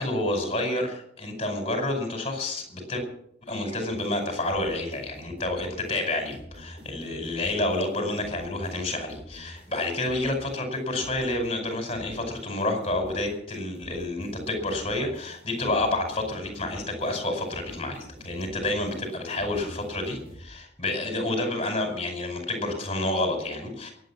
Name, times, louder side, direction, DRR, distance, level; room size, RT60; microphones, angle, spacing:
voice 1, 0.0-3.0 3.5-23.9, left 2 dB, 30° left, 3 dB, 5.0 m, -29 dB
sound 1, 3.9-20.5, right 1 dB, 30° right, 6.1 m, -47 dB
22.0 x 8.9 x 7.3 m, 0.70 s
head